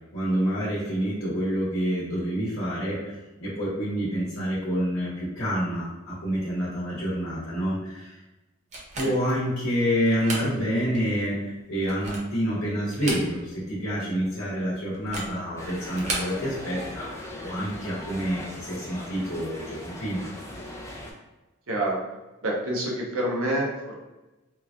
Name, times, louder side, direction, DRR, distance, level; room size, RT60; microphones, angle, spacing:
voice 1, 0.1-3.1 3.4-8.2 8.9-20.3, equal, 65° left, -8 dB, 0.9 m, -28 dB
sound 1, 8.7-9.4 10.0-10.5 10.9-11.0 11.7-12.4 12.8-13.6 13.9-14.0 14.9-15.4 15.9-16.3, right 2 dB, 35° right, 0.6 m, -34 dB
sound 2, 15.6-21.1, left 1 dB, 15° left, 0.4 m, -39 dB
voice 2, 21.7-22.0 22.4-23.9, right 1 dB, 80° right, -2 dB, 0.7 m, -27 dB
3.1 x 2.3 x 2.4 m, 1.1 s
head